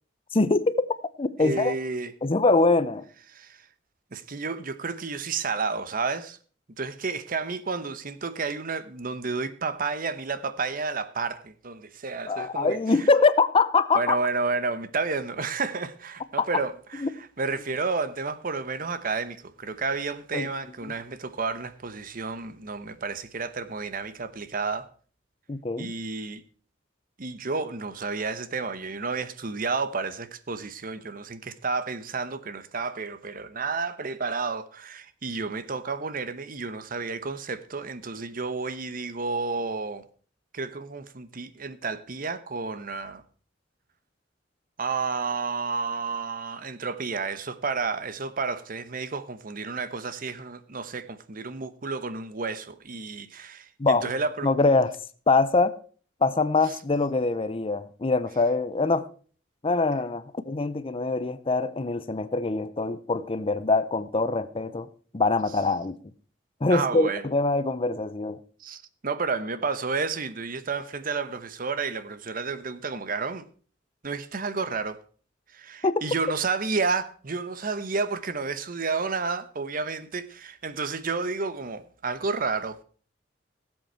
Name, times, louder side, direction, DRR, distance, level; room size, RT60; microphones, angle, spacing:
voice 1, 0.3-0.9 1.2-1.7 2.2-3.0 12.3-14.2 17.0-17.1 20.3-20.5 20.8-20.9 25.5-25.9 53.8-54.1 54.4-54.9 55.3-55.7 56.2-59.0 59.6-64.9 65.1-66.0 66.6-68.4 75.8-76.0, left 3 dB, 30° left, 0.6 m, -23 dB
voice 2, 1.4-2.1 3.3-3.7 4.1-6.4 6.8-13.1 13.9-24.9 25.8-26.4 27.2-40.0 40.5-43.2 44.8-54.5 56.6-56.8 66.7-67.2 68.6-73.5 74.0-75.0 75.5-82.8, right 4 dB, 50° right, 0.9 m, -31 dB
17.0 x 7.8 x 4.5 m
head